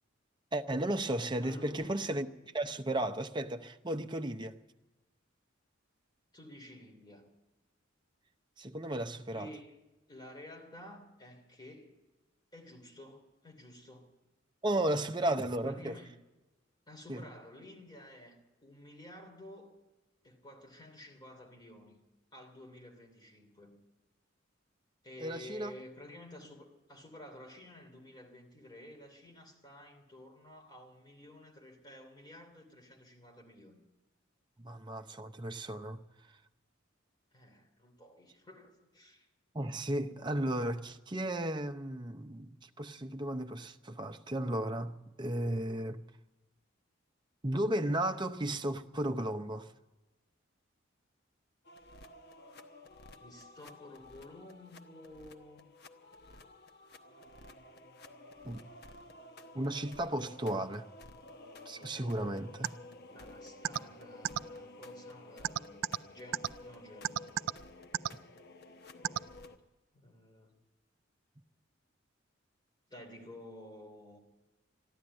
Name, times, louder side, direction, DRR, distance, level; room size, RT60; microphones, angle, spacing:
voice 1, 0.5-2.3 2.5-4.6 8.6-9.5 14.6-16.0 17.1-17.3 25.2-25.7 34.6-36.0 39.5-46.1 47.4-49.7 58.4-58.6 59.5-60.9 61.7-62.7 68.1-68.2, right 1 dB, 25° right, 0.7 m, -34 dB
voice 2, 1.4-2.0 6.3-7.3 9.3-9.8 10.1-11.9 12.5-14.1 15.6-16.2 16.9-19.7 20.2-22.0 22.3-23.8 25.0-33.8 37.3-39.3 53.2-55.7 63.1-67.3 69.0-69.5 69.9-70.5 72.9-74.2, left 1 dB, 20° left, 3.1 m, -52 dB
sound 1, 51.6-69.6, left 2 dB, 55° left, 1.1 m, -53 dB
sound 2, 62.6-62.7 63.6-63.8 64.2-64.4 65.4-66.0 66.3-66.5 67.0-67.5 67.9-68.1 69.0-69.2, right 10 dB, 80° right, 0.4 m, -30 dB
14.5 x 11.0 x 8.8 m
head